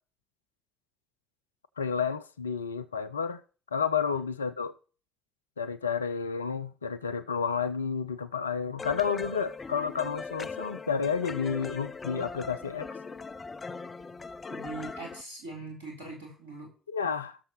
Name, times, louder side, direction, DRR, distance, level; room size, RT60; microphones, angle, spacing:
voice 1, 1.8-3.4 3.7-4.7 5.6-12.9 16.9-17.4, left 6 dB, 80° left, 0.4 m, -31 dB
sound 1, 8.8-15.2, left 4 dB, 30° left, 0.7 m, -40 dB
voice 2, 14.5-16.7, right 2 dB, 80° right, 3.4 m, -41 dB
17.0 x 6.7 x 3.1 m
figure-of-eight pair, 45°, 0 cm